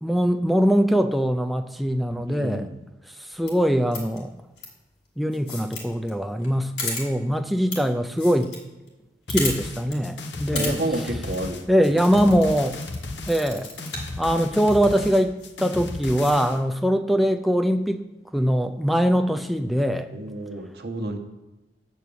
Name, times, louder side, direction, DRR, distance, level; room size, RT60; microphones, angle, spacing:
voice 1, 0.0-2.7 3.3-4.3 5.2-8.5 9.3-10.8 11.7-12.8 13.3-13.7 14.2-18.0 18.3-20.1, equal, ahead, 6 dB, 0.4 m, -22 dB
voice 2, 2.3-2.7 10.5-11.6 20.1-21.2, right 1 dB, 65° right, 5 dB, 1.1 m, -30 dB
sound 1, 3.3-3.5 3.9-4.2 4.6-4.7 5.3-5.8 6.1-6.2 6.4-6.5 6.8-7.0 7.7-7.8 8.1-8.6 8.9-9.0 9.3-9.5 9.9-10.0 10.4-10.7 11.1-11.4 12.0-13.0 13.3-14.1 14.7-14.8 15.4-15.5 15.9-16.3, left 3 dB, 75° left, 2.5 m, -32 dB
sound 2, 9.3-16.6, left 2 dB, 90° left, 0.9 m, -35 dB
8.0 x 4.5 x 6.9 m, 1.1 s
head